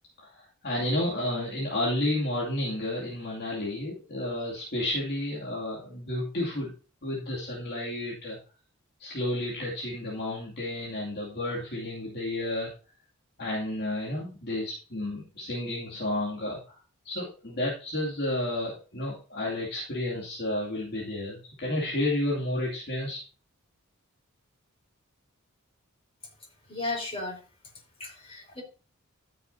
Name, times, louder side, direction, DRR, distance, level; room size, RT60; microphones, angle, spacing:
voice 1, 0.2-6.7 7.0-8.4 9.0-12.7 13.4-16.8 17.0-23.2, left 1 dB, 50° left, -4 dB, 2.6 m, -31 dB
voice 2, 26.7-27.4 28.0-28.6, left 2 dB, 30° left, -1 dB, 4.5 m, -34 dB
13.5 x 6.8 x 2.8 m, 0.35 s
head